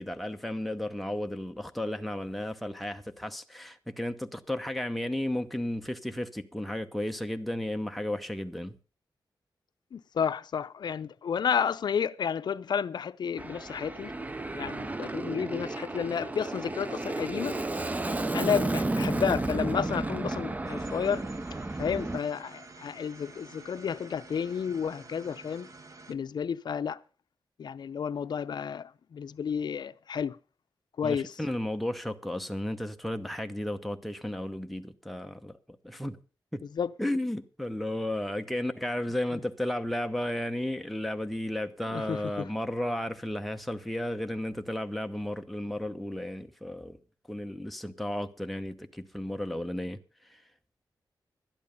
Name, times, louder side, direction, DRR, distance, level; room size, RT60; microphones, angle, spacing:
voice 1, 0.0-8.8 31.0-35.5 35.8-36.2 36.5-36.6 37.0-47.0 47.3-50.0, left 1 dB, ahead, 0.9 m, -33 dB
voice 2, 9.9-14.1 14.5-17.6 18.3-21.3 21.8-25.7 26.1-27.0 27.6-30.4 31.0-31.4 36.7-36.9 39.3-39.4 41.9-42.5, left 7 dB, 65° left, 0.5 m, -31 dB
Aircraft, 13.4-22.2, right 2 dB, 20° right, 0.6 m, -32 dB
sound 1, 20.6-26.1, right 3 dB, 45° right, 1.0 m, -49 dB
12.0 x 11.0 x 5.3 m
wide cardioid pair, 125°, 8 cm